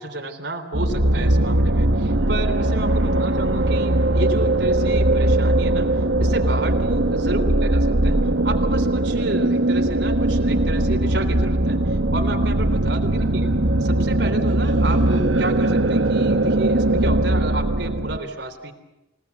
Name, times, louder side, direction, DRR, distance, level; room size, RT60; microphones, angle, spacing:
voice 1, 0.0-5.9 6.2-8.1 8.4-13.5 13.8-18.7, right 2 dB, 65° right, 5 dB, 3.6 m, -31 dB
sound 1, 0.7-18.2, right 1 dB, 90° right, 1.6 m, -20 dB
29.0 x 18.5 x 8.2 m, 0.98 s
head